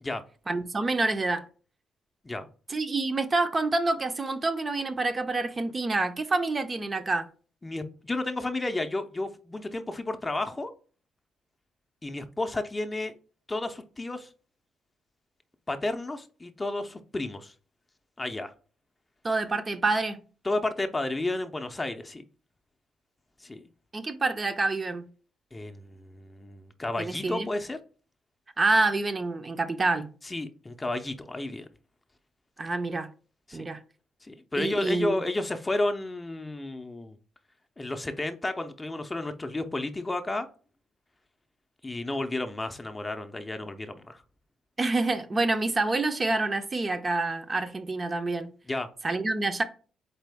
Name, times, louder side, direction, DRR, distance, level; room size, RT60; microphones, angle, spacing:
voice 1, 0.5-1.4 2.7-7.3 19.2-20.2 23.9-25.1 27.0-27.5 28.6-30.1 32.6-33.1 33.5-33.8 34.6-35.2 44.8-48.5 49.0-49.6, right 3 dB, 30° right, 0.5 m, -27 dB
voice 2, 7.6-10.7 12.0-13.1 13.5-14.3 15.7-17.5 18.2-18.5 20.4-22.2 23.4-23.7 25.5-27.8 30.2-31.7 33.5-33.7 34.2-37.2 37.8-40.5 41.8-44.2 48.7-48.9, left 2 dB, 20° left, 0.5 m, -32 dB
4.1 x 3.7 x 3.4 m
cardioid pair, 90°, 0 cm